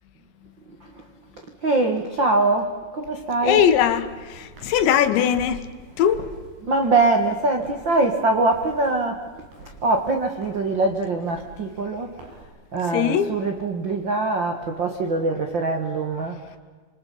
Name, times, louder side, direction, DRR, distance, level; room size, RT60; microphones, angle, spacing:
voice 1, 1.4-3.6 5.9-9.4 9.8-12.4 12.7-16.6, right 3 dB, 80° right, 4 dB, 1.0 m, -23 dB
voice 2, 3.4-5.7 6.0-6.2 12.9-13.3, left 9 dB, 85° left, 9 dB, 3.7 m, -20 dB
Walk footsteps, 3.4-12.4, right 3 dB, 60° right, 7.7 m, -46 dB
27.0 x 26.0 x 5.6 m, 1.4 s
omnidirectional pair, 5.1 m